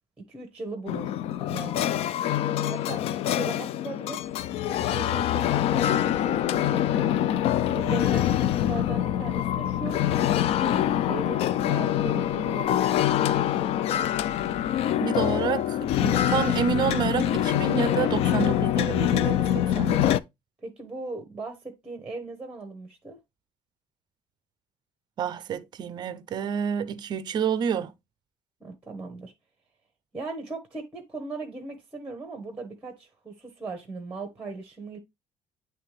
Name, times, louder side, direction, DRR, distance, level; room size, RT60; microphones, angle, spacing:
voice 1, 0.3-2.0 2.6-4.2 4.7-7.1 7.7-10.0 10.6-12.8 13.3-13.7 20.6-23.2 28.6-29.3 30.1-35.0, right 3 dB, 10° right, 1.0 m, -38 dB
sound 1, 0.9-20.2, left 11 dB, 55° left, 0.3 m, -25 dB
voice 2, 15.0-20.0 25.2-27.9, right 7 dB, 35° right, 0.5 m, -29 dB
9.5 x 3.3 x 3.2 m
cardioid pair, 170°, 12 cm